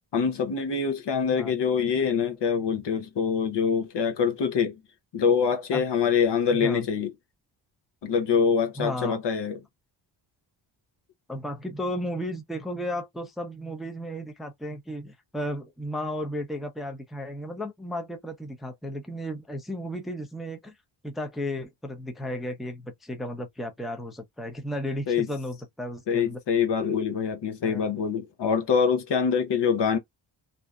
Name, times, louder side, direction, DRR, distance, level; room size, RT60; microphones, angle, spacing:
voice 1, 0.1-4.8 5.1-7.1 8.0-9.6 25.1-25.3 26.1-30.0, left 6 dB, 60° left, 0.9 m, -25 dB
voice 2, 8.8-9.2 11.3-20.7 21.0-26.4 27.6-27.8, equal, ahead, 0.6 m, -34 dB
2.7 x 2.0 x 2.3 m
cardioid pair, 70°, 47 cm